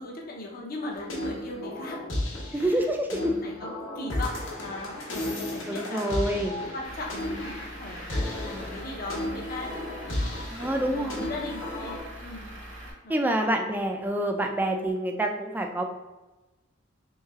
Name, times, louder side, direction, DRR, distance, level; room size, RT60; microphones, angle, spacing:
voice 1, 0.0-2.0 2.5-12.6 12.8-13.5, left 2 dB, 50° left, -1 dB, 0.7 m, -39 dB
sound 1, 0.9-12.0, left 1 dB, 80° left, 1.0 m, -34 dB
voice 2, 2.5-3.3 5.7-6.6 10.5-11.3 13.1-15.8, right 1 dB, 10° right, 3 dB, 0.3 m, -27 dB
Truck / Idling, 6.8-12.9, right 1 dB, 65° right, 0.9 m, -43 dB
3.1 x 3.1 x 3.5 m, 1.1 s
head